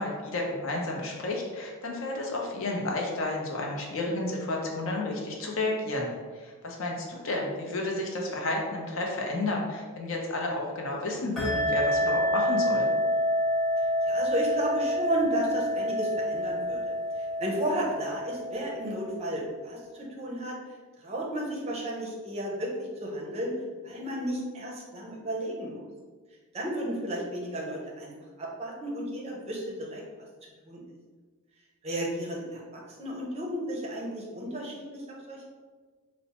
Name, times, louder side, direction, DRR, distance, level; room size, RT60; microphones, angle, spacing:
voice 1, 0.0-6.1 6.3-12.9, left 2 dB, 60° left, -1 dB, 0.6 m, -31 dB
sound 1, 11.4-19.5, equal, ahead, 0.8 m, -28 dB
voice 2, 14.1-20.6 21.0-23.5 23.8-25.8 26.5-28.1 28.4-30.0 30.7-30.8 31.8-35.5, right 1 dB, 30° right, -3 dB, 0.5 m, -33 dB
4.3 x 2.0 x 2.9 m, 1.4 s
head